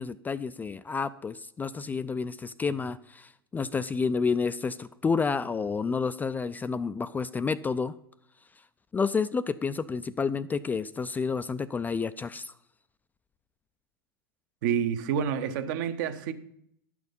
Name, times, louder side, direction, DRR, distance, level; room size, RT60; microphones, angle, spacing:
voice 1, 0.0-7.9 8.9-12.5, left 5 dB, 15° left, 0.3 m, -30 dB
voice 2, 14.6-16.3, right 8 dB, 55° right, 0.9 m, -28 dB
11.0 x 6.2 x 5.3 m
hypercardioid pair, 95°, 12 cm